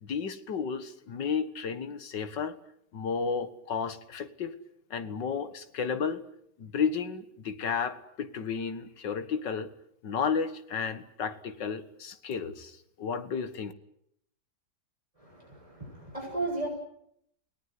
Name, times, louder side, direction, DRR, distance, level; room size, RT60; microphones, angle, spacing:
voice 1, 0.0-2.6 2.9-4.6 4.9-6.2 6.6-9.7 10.0-13.7, left 6 dB, 85° left, 11 dB, 2.2 m, -32 dB
voice 2, 15.2-16.7, right 2 dB, 20° right, -1 dB, 7.1 m, -35 dB
29.5 x 18.5 x 9.6 m, 0.74 s
omnidirectional pair, 1.9 m